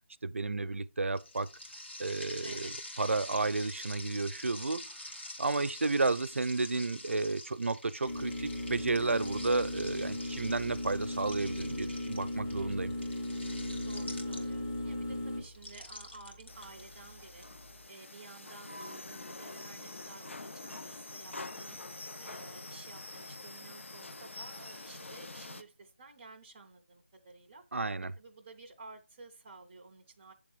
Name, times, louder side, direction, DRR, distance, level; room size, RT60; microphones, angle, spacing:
voice 1, 0.2-1.5 2.0-2.7 3.0-4.9 5.4-12.9 27.7-28.1, right 3 dB, 85° right, 0.5 m, -32 dB
sound 1, 1.1-14.8 15.5-17.4, left 1 dB, 60° left, 2.2 m, -47 dB
voice 2, 2.4-2.7 13.9-17.5 17.9-21.8 22.2-27.6 28.2-30.3, right 3 dB, 5° right, 0.4 m, -53 dB
sound 2, 8.1-17.8, left 1 dB, 15° left, 0.7 m, -38 dB
sound 3, 16.5-25.6, left 2 dB, 75° left, 0.7 m, -46 dB
8.3 x 3.5 x 5.0 m
figure-of-eight pair, 175°, 7 cm